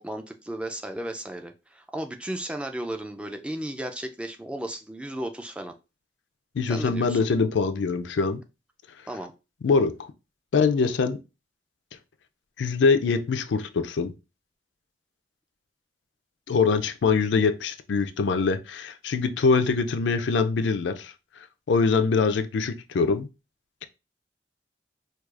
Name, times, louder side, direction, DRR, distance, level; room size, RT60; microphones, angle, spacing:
voice 1, 0.0-5.7 6.7-7.3 9.1-9.3, right 1 dB, 5° right, 0.3 m, -34 dB
voice 2, 6.6-8.4 9.6-9.9 10.5-11.2 12.6-14.1 16.5-21.1 21.7-23.3, left 4 dB, 85° left, 0.4 m, -23 dB
4.6 x 2.3 x 2.4 m
head